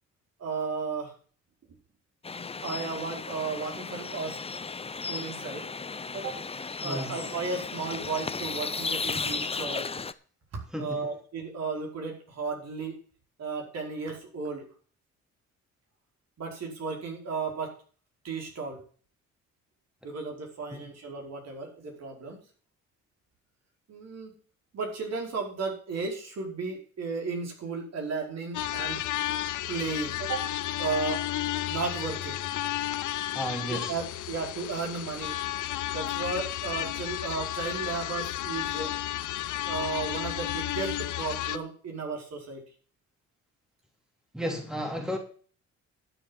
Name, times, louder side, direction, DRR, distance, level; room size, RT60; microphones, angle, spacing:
voice 1, 0.4-1.1 2.6-4.4 5.1-5.7 6.1-6.3 6.8-9.9 10.8-12.9 13.4-14.7 16.4-17.7 18.2-18.8 20.0-22.4 23.9-24.3 24.7-29.0 29.7-30.5 30.8-31.2 31.7-32.4 33.7-35.3 35.9-38.9 39.6-42.6, right 4 dB, 60° right, 5.0 m, -34 dB
sound 1, 2.2-10.1, left 4 dB, 20° left, 0.7 m, -35 dB
voice 2, 6.8-7.1 10.7-11.1 20.7-20.8 33.3-34.0 44.3-45.2, equal, ahead, 2.9 m, -33 dB
sound 2, 28.5-41.6, left 13 dB, 75° left, 0.9 m, -32 dB
11.5 x 7.0 x 7.3 m
cardioid pair, 90°, 30 cm